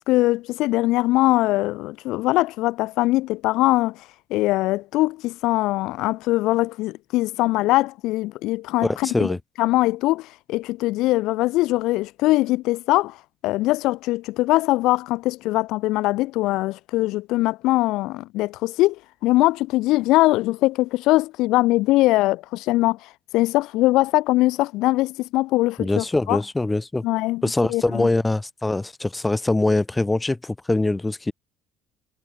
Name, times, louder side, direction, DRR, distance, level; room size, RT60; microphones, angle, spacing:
voice 1, 0.1-9.3 9.6-13.2 13.4-26.4 27.0-27.4 27.7-28.1, left 18 dB, 70° left, 0.4 m, -22 dB
voice 2, 8.8-9.4 25.8-27.0 27.4-31.3, left 2 dB, 10° left, 2.3 m, -23 dB
cardioid pair, 130°, 0 cm